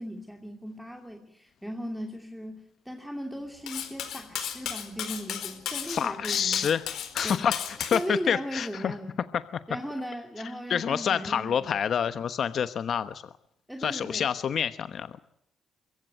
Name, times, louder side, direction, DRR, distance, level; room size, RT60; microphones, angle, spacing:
voice 1, 0.0-6.7 7.2-7.4 7.9-9.1 9.7-11.7 13.7-14.3, equal, ahead, 4 dB, 2.6 m, -37 dB
Cutlery silverware, 3.7-8.0, left 9 dB, 80° left, 4.2 m, -34 dB
voice 2, 5.8-6.9 7.1-8.9 10.7-13.2 13.8-15.1, left 8 dB, 55° left, 12 dB, 1.0 m, -27 dB
23.5 x 15.5 x 9.3 m, 0.76 s
cardioid pair, 95°, 0 cm